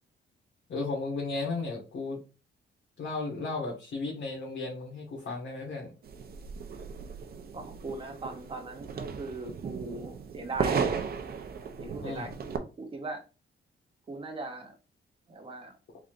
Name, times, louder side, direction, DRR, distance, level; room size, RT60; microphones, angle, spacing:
voice 1, 0.7-2.2 3.0-5.9 12.0-12.3, left 3 dB, 70° left, 1.4 m, -34 dB
sound 1, 6.0-12.6, right 6 dB, 50° right, 0.6 m, -35 dB
voice 2, 7.5-11.0 11.8-13.2 14.1-14.7 15.3-15.7, right 2 dB, 25° right, 1.0 m, -39 dB
4.0 x 3.2 x 2.5 m
cardioid pair, 125°, 20 cm